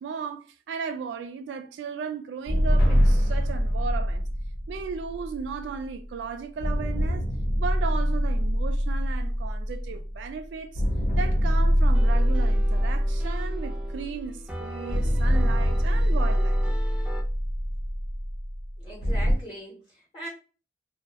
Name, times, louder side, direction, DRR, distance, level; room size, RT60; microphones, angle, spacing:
voice 1, 0.0-4.2 4.7-7.2 7.6-10.8 11.1-16.6, right 5 dB, 80° right, 0.3 m, -35 dB
sound 1, 2.5-6.0 6.6-10.4 10.7-14.4 14.9-19.3, equal, 85° left, 0.7 m, -24 dB
sound 2, 11.9-17.2, right 1 dB, 5° right, 0.4 m, -41 dB
voice 2, 18.8-20.3, right 1 dB, 30° left, 0.6 m, -40 dB
2.2 x 2.0 x 2.7 m
head